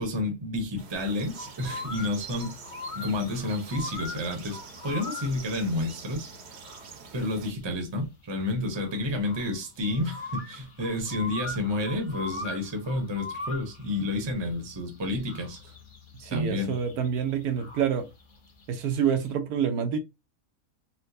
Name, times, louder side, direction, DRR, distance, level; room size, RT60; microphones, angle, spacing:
voice 1, 0.0-2.6 3.0-6.6 7.1-15.7 16.3-16.8, left 2 dB, 25° right, 0.7 m, -30 dB
sound 1, 0.8-7.5, right 5 dB, 55° right, 0.9 m, -46 dB
sound 2, 0.9-19.3, left 3 dB, 40° left, 0.8 m, -42 dB
voice 2, 16.2-18.1 18.7-20.0, right 8 dB, 85° right, 1.2 m, -27 dB
4.3 x 2.1 x 2.6 m
omnidirectional pair, 1.6 m